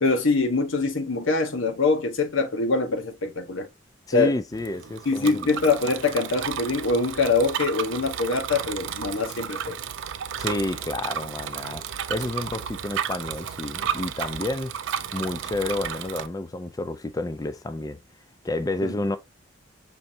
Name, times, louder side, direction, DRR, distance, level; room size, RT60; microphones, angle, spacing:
voice 1, 0.0-3.7 4.1-4.3 5.1-9.8 18.8-18.9, left 3 dB, 80° left, 0.9 m, -24 dB
voice 2, 4.1-5.5 10.4-11.8 12.1-14.7 15.1-18.0 18.4-19.2, left 2 dB, 20° left, 0.4 m, -30 dB
Bicycle, 4.5-16.3, right 8 dB, 70° right, 0.4 m, -33 dB
5.8 x 3.2 x 2.7 m
head